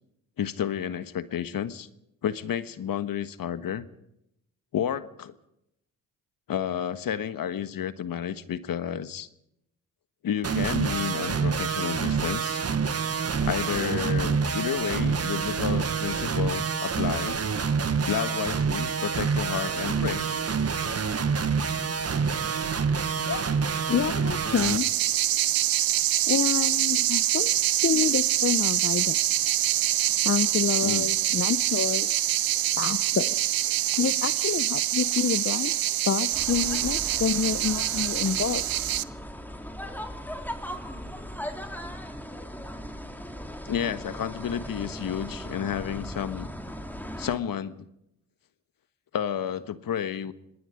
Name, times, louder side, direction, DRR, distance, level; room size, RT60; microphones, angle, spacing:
voice 1, 0.4-1.9 2.2-3.9 4.7-5.3 6.5-9.3 10.2-12.6 13.4-17.4 18.1-20.3 30.8-31.1 43.6-46.5 47.2-47.9 49.1-50.3, left 9 dB, 55° left, 13 dB, 1.4 m, -31 dB
sound 1, 10.4-24.8, right 5 dB, 35° right, 1.6 m, -27 dB
voice 2, 23.9-24.9 26.3-27.5 27.8-29.2 30.2-32.1 32.8-33.4 34.0-35.7 36.1-38.6, left 7 dB, 35° left, 15 dB, 0.9 m, -28 dB
sound 2, 24.6-39.0, right 13 dB, 60° right, 0.9 m, -25 dB
sound 3, 36.3-47.4, equal, 5° left, 3.4 m, -38 dB
27.0 x 20.0 x 5.2 m, 0.82 s
hypercardioid pair, 50°, 40 cm